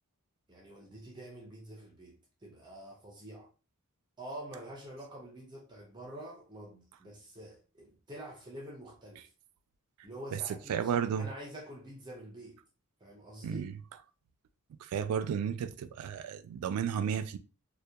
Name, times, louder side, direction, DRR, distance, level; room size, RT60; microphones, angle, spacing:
voice 1, 0.5-3.5 4.2-9.3 10.0-10.9 11.2-12.6 13.0-13.6, right 1 dB, 20° right, 0.5 m, -47 dB
voice 2, 10.7-11.3 13.4-13.7 14.8-17.4, right 7 dB, 90° right, 0.3 m, -33 dB
2.7 x 2.1 x 2.2 m
head